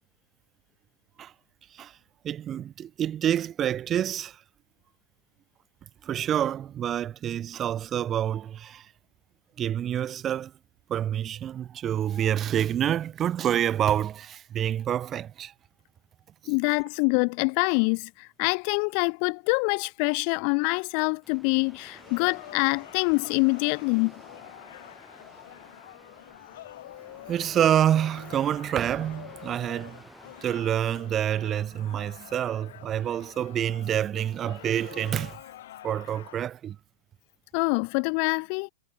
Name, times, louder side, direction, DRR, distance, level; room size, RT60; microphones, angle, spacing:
voice 1, 2.2-4.4 6.0-8.9 9.6-10.5 10.9-15.5 16.4-16.5 27.3-30.0 30.4-35.3 35.8-36.8, right 10 dB, 30° right, 1.6 m, -27 dB
voice 2, 16.5-24.1 37.5-38.7, left 40 dB or more, 50° left, 0.5 m, -25 dB
sound 1, 21.2-35.4, right 1 dB, 5° right, 6.5 m, -53 dB
sound 2, 21.9-36.4, left 14 dB, 65° left, 6.5 m, -47 dB
hypercardioid pair, 120°, 0 cm